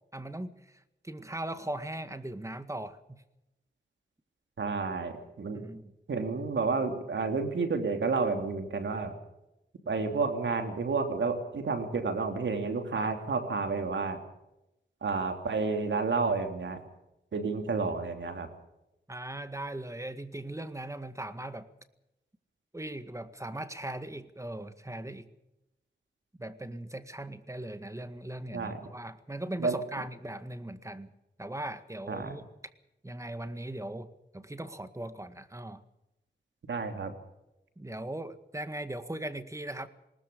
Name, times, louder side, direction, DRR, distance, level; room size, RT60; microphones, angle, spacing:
voice 1, 0.1-3.2 5.5-5.9 13.0-13.1 19.1-21.7 22.7-25.3 26.4-31.1 31.4-32.5 33.0-35.8 37.8-39.9, right 1 dB, 15° right, 10 dB, 1.8 m, -39 dB
voice 2, 4.6-5.6 6.1-9.1 9.9-14.2 15.0-16.8 17.3-18.5 28.5-28.8 29.6-29.8 32.1-32.3 36.7-37.1, right 4 dB, 80° right, 6 dB, 3.1 m, -30 dB
20.0 x 19.5 x 7.0 m, 0.91 s
cardioid pair, 60°, 19 cm